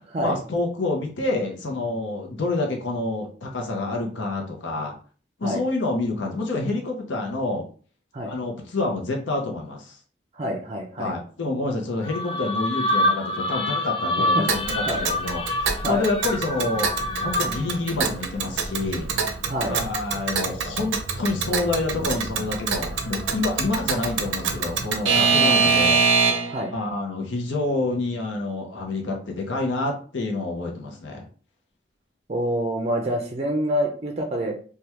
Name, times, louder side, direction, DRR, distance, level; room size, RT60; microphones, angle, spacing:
voice 1, 0.2-4.9 5.4-7.6 8.2-10.0 11.0-16.9 17.2-19.1 19.7-26.0 26.7-31.3, left 2 dB, 75° left, 0 dB, 0.7 m, -28 dB
voice 2, 10.3-11.1 14.2-14.5 14.9-15.0 15.8-16.0 19.5-19.8 26.5-26.7 32.3-34.5, equal, 35° right, 3 dB, 0.4 m, -26 dB
sound 1, 12.0-17.7, left 1 dB, 30° left, 0.3 m, -26 dB
Alarm / Clock, 14.5-26.6, right 5 dB, 85° right, 0.5 m, -25 dB
sound 2, 16.2-26.1, left 1 dB, 50° left, 0.9 m, -44 dB
3.3 x 2.3 x 2.9 m, 0.41 s
head